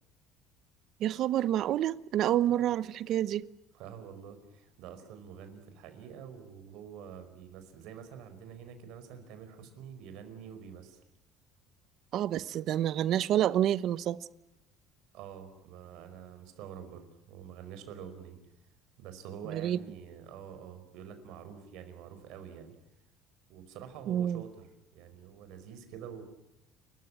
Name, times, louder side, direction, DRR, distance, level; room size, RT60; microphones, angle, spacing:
voice 1, 1.0-3.5 12.1-14.2 19.5-19.8 24.1-24.4, right 11 dB, 55° right, 0.8 m, -28 dB
voice 2, 3.7-11.0 15.1-18.4 19.0-22.7 23.5-26.2, right 8 dB, 70° right, 4.9 m, -47 dB
30.0 x 15.0 x 9.8 m
cardioid pair, 135°, 0 cm